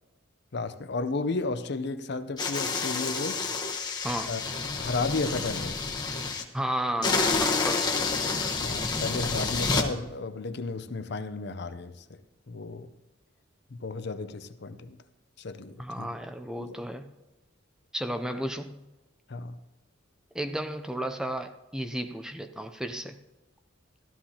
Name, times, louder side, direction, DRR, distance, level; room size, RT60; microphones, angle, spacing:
voice 1, 0.5-3.4 4.3-4.4 4.8-5.8 8.6-12.2 12.5-12.9 13.7-15.0 15.4-16.1 16.6-16.8 19.3-19.5, left 3 dB, 55° left, 0.6 m, -33 dB
sound 1, 2.4-6.4 7.0-9.9, left 4 dB, 20° left, 1.0 m, -29 dB
voice 2, 6.5-8.0 15.8-17.1 17.9-18.8 20.3-23.2, right 1 dB, 5° right, 0.4 m, -33 dB
15.0 x 13.0 x 2.9 m
head